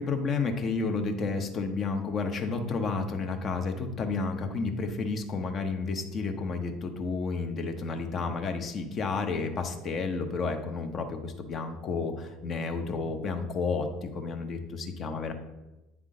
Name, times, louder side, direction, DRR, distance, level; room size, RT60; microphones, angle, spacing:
voice 1, 0.0-15.3, left 4 dB, 40° left, 5 dB, 0.9 m, -31 dB
9.0 x 3.6 x 3.8 m, 1.0 s
hypercardioid pair, 70°, 0 cm